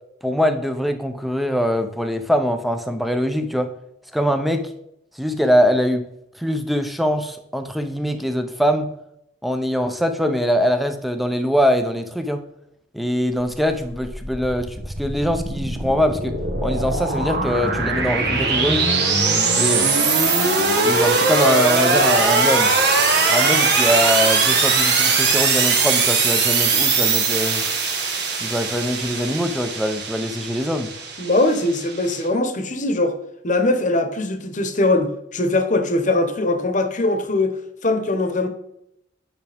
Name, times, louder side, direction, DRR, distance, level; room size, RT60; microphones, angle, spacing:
voice 1, 0.2-3.7 4.1-4.7 5.2-6.0 6.4-8.9 9.4-12.4 12.9-18.9 19.6-19.9 20.8-22.7 23.3-27.6 28.4-30.9, equal, ahead, 7 dB, 0.7 m, -22 dB
sound 1, 13.9-32.2, right 4 dB, 60° right, 1.5 m, -20 dB
voice 2, 31.2-33.1 33.4-38.5, left 2 dB, 40° left, 7 dB, 1.0 m, -21 dB
9.4 x 5.9 x 3.5 m, 0.79 s
head